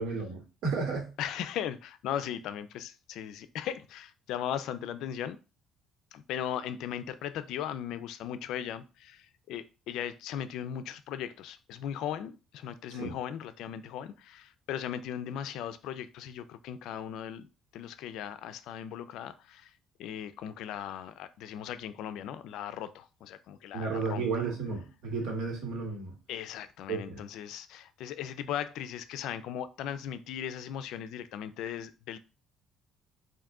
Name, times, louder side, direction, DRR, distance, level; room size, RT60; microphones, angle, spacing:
voice 1, 0.0-1.1 12.9-13.1 23.7-26.2 26.9-27.2, right 4 dB, 75° right, 1.5 m, -33 dB
voice 2, 1.2-5.4 6.1-17.5 17.7-19.7 20.0-24.3 26.3-32.2, left 10 dB, 75° left, 0.4 m, -38 dB
3.5 x 2.6 x 3.6 m
cardioid pair, 125°, 0 cm